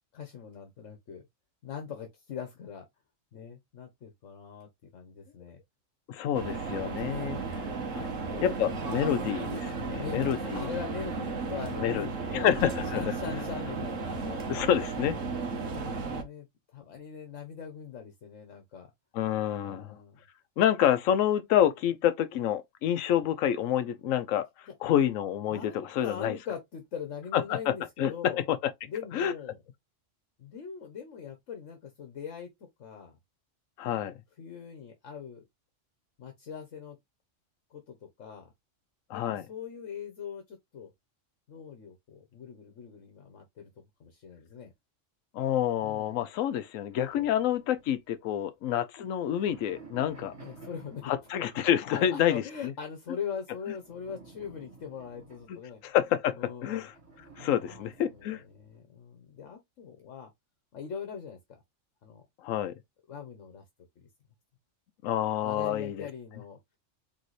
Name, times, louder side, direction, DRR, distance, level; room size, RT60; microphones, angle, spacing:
voice 1, 0.1-1.2 1.6-2.8 3.3-5.6 7.0-7.3 7.9-9.2 9.8-12.5 12.9-14.4 15.2-15.4 15.7-18.9 19.6-20.2 25.5-28.5 28.8-29.6 30.4-32.5 32.8-33.1 34.4-35.4 36.2-37.0 37.7-38.5 39.1-40.9 41.5-43.7 44.0-44.7 45.8-46.1 47.2-47.3 50.4-51.1 51.9-55.8 56.4-56.9 57.6-60.3 60.7-61.4 62.0-62.2 63.1-63.6 64.0-64.1 65.4-66.6, left 7 dB, 70° left, 1.3 m, -41 dB
voice 2, 6.1-7.6 8.4-10.7 11.8-12.1 12.3-13.1 14.5-15.2 19.1-20.0 20.6-24.5 24.8-26.4 27.3-27.7 28.0-28.1 28.5-28.6 29.1-29.3 33.8-34.1 39.1-39.4 45.3-50.3 51.1-52.7 55.8-56.9 57.4-58.4 62.4-62.7 65.0-66.1, left 10 dB, 90° left, 1.0 m, -28 dB
sound 1, 6.3-16.2, right 4 dB, 75° right, 1.4 m, -34 dB
sound 2, 46.9-48.5 49.0-52.1 53.6-56.2 56.9-58.8, right 3 dB, 55° right, 2.0 m, -53 dB
4.0 x 3.6 x 3.1 m
omnidirectional pair, 1.3 m